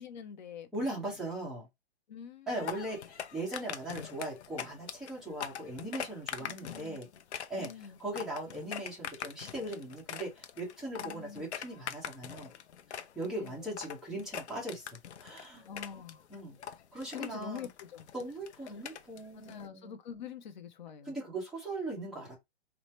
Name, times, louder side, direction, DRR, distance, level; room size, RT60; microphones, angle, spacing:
voice 1, 0.0-0.7 2.1-2.7 6.4-7.0 7.6-8.0 10.9-11.4 13.3-13.6 15.7-16.2 17.1-18.1 19.3-21.2, left 8 dB, 45° left, 0.7 m, -45 dB
voice 2, 0.7-1.7 2.5-7.1 7.5-7.7 8.0-12.5 12.9-15.7 16.3-16.6 16.9-17.7 18.1-19.9 21.0-22.3, right 1 dB, ahead, 0.8 m, -39 dB
sound 1, 2.5-19.7, left 8 dB, 85° left, 0.6 m, -43 dB
3.2 x 2.1 x 4.2 m
hypercardioid pair, 160°, 32 cm